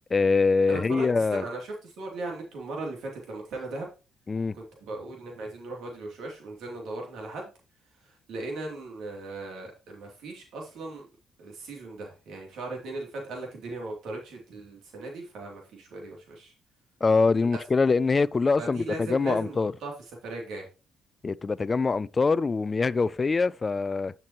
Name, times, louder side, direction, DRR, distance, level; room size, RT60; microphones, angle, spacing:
voice 1, 0.1-1.4 4.3-4.5 17.0-19.7 21.2-24.1, left 4 dB, 30° left, 0.3 m, -24 dB
voice 2, 0.7-3.9 4.5-7.5 8.0-11.0 11.4-16.5 18.6-19.9 20.2-20.7, right 2 dB, 80° right, 2.9 m, -38 dB
10.5 x 6.0 x 3.0 m
cardioid pair, 90°, 0 cm